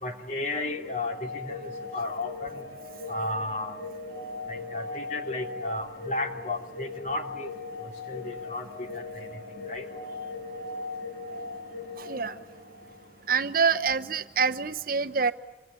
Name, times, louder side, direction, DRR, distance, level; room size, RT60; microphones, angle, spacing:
voice 1, 0.0-2.6 3.1-3.8 4.5-7.5 7.8-9.9, left 2 dB, 40° left, 4 dB, 2.9 m, -34 dB
sound 1, 0.6-13.4, left 3 dB, 75° left, 6.2 m, -39 dB
voice 2, 12.0-12.4 13.3-15.3, right 5 dB, 50° right, 9 dB, 0.9 m, -26 dB
26.5 x 26.0 x 8.4 m, 1.1 s
head